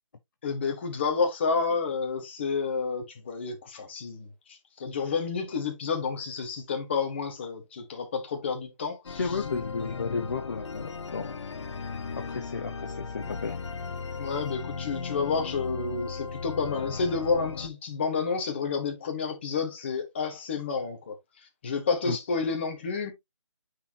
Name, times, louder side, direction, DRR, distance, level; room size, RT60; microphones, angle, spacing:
voice 1, 0.4-9.2 14.2-21.2 21.6-23.1, left 5 dB, 20° left, 1.5 m, -30 dB
sound 1, 9.0-17.7, left 5 dB, 60° left, 0.8 m, -36 dB
voice 2, 9.2-11.4 12.2-13.6 22.0-22.2, left 4 dB, 35° left, 0.8 m, -33 dB
9.3 x 4.4 x 2.9 m
hypercardioid pair, 175°, 16 cm